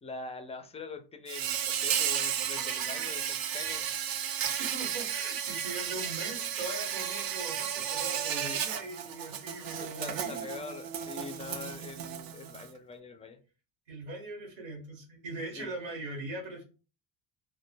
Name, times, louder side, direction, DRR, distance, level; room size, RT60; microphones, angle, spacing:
voice 1, 0.0-3.8 5.9-6.0 8.3-8.6 9.8-13.4 15.6-15.7, left 4 dB, 15° left, 7 dB, 0.3 m, -43 dB
Insect, 1.3-12.7, right 9 dB, 45° right, 0.5 m, -33 dB
voice 2, 4.3-10.5 13.9-16.6, right 2 dB, 85° right, 1 dB, 1.1 m, -41 dB
2.1 x 2.0 x 3.2 m, 0.35 s
hypercardioid pair, 65°, 49 cm